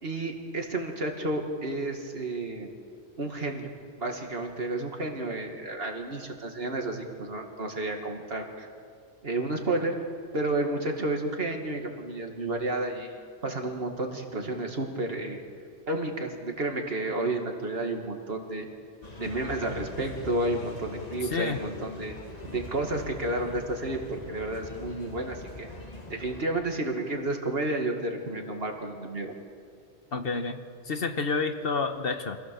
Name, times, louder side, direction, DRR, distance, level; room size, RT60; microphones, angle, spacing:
voice 1, 0.0-2.7 3.2-3.7 4.0-8.7 9.2-10.0 10.3-13.2 13.4-15.4 15.9-18.7 19.2-22.1 22.5-25.7 26.1-29.3, right 2 dB, 60° right, 3 dB, 2.3 m, -31 dB
sound 1, 19.0-26.4, left 2 dB, 35° left, 2.0 m, -42 dB
voice 2, 30.1-30.5 30.9-32.4, left 4 dB, 60° left, 7 dB, 1.3 m, -29 dB
25.5 x 16.5 x 6.9 m, 2.2 s
omnidirectional pair, 1.1 m